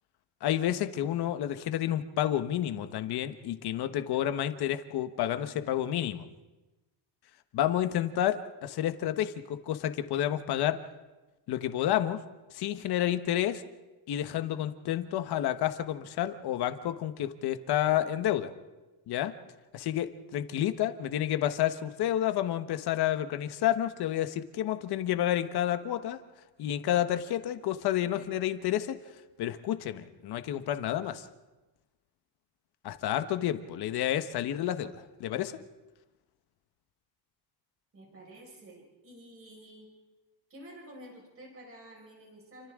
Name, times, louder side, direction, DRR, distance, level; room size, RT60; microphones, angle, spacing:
voice 1, 0.4-6.3 7.5-10.8 11.5-12.2 12.5-13.6 14.1-18.5 19.1-19.3 19.7-26.2 26.6-29.0 29.4-31.3 32.8-35.6, left 12 dB, 60° left, 9 dB, 1.3 m, -30 dB
voice 2, 37.9-39.9 40.5-42.7, right 1 dB, 30° right, -1 dB, 5.6 m, -50 dB
30.0 x 24.5 x 3.8 m, 1.1 s
cardioid pair, 165°, 43 cm